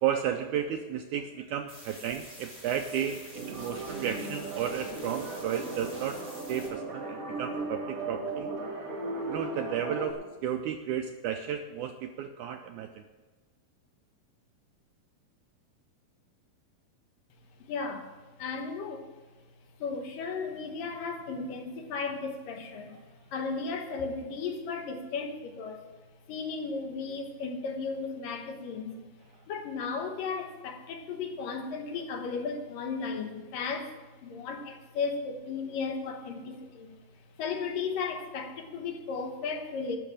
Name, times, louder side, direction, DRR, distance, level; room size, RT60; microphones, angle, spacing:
voice 1, 0.0-6.2 6.5-8.5 9.3-13.0, right 9 dB, 80° right, 1.8 m, -33 dB
sound 1, 1.7-6.7, equal, 10° left, 4.2 m, -48 dB
sound 2, 3.3-10.1, right 2 dB, 45° right, 2.7 m, -37 dB
voice 2, 17.7-18.1 18.4-19.1 19.8-23.0 23.3-25.8 26.3-29.0 29.5-33.9 34.2-37.0 37.4-40.0, left 4 dB, 75° left, 2.8 m, -35 dB
12.0 x 6.4 x 8.6 m
omnidirectional pair, 4.1 m